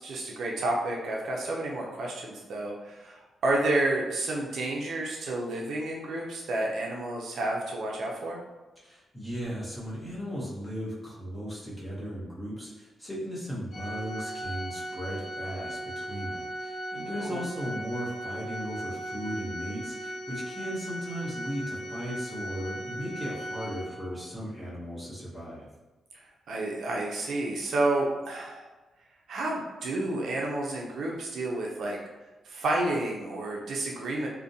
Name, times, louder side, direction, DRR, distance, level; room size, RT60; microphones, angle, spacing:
voice 1, 0.0-8.4 17.2-17.4 26.5-28.7 29.3-32.0 32.5-34.3, right 2 dB, 65° right, -2 dB, 0.4 m, -30 dB
voice 2, 8.8-25.7, equal, 10° left, -9 dB, 0.9 m, -37 dB
Organ, 13.7-24.3, right 1 dB, 70° left, 0.6 m, -37 dB
2.5 x 2.1 x 2.6 m, 1.2 s
wide cardioid pair, 155°, 0 cm